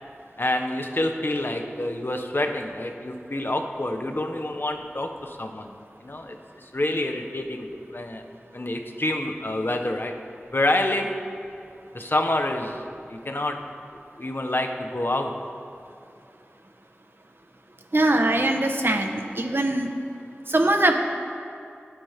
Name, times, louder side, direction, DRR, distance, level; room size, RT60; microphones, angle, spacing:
voice 1, 0.4-5.7 6.0-8.2 8.5-10.2 10.5-11.3 11.9-12.8 13.1-13.7 14.2-15.4 18.8-19.0, left 1 dB, 50° left, 4 dB, 1.2 m, -27 dB
voice 2, 17.9-19.9 20.5-20.9, right 1 dB, 55° right, 4 dB, 1.3 m, -22 dB
25.0 x 9.3 x 3.7 m, 2.5 s
wide cardioid pair, 45°, 5 cm